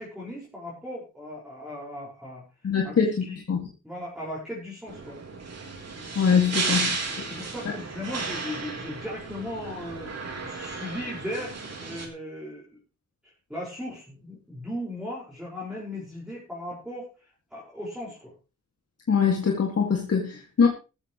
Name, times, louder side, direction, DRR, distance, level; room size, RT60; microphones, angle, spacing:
voice 1, 0.0-2.4 2.8-2.9 3.2-3.4 3.8-5.2 6.5-6.7 7.1-10.1 10.4-12.8 13.2-17.1 17.5-18.3, left 1 dB, ahead, -7 dB, 5.3 m, -37 dB
voice 2, 2.6-3.6 6.2-6.9 19.1-20.7, left 6 dB, 55° left, 1 dB, 2.2 m, -23 dB
sound 1, 4.9-12.1, right 4 dB, 55° right, 3.7 m, -34 dB
14.5 x 14.0 x 3.1 m, 0.32 s
wide cardioid pair, 140°, 30 cm